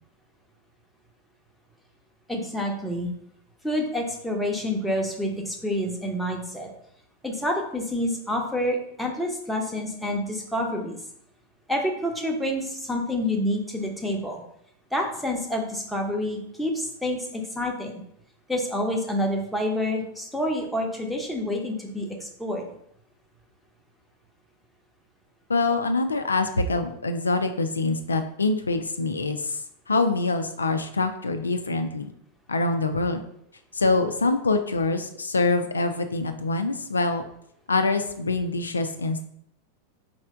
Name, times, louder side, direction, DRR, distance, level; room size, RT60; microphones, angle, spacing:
voice 1, 2.3-3.1 3.6-6.7 7.2-11.0 11.7-14.4 14.9-18.0 18.5-22.7, left 1 dB, ahead, 0 dB, 0.8 m, -28 dB
voice 2, 25.5-32.1 32.5-33.2 33.7-37.2 37.7-39.3, left 3 dB, 75° left, 7 dB, 0.3 m, -25 dB
4.2 x 3.2 x 3.6 m, 0.70 s
figure-of-eight pair, 90°, 0 cm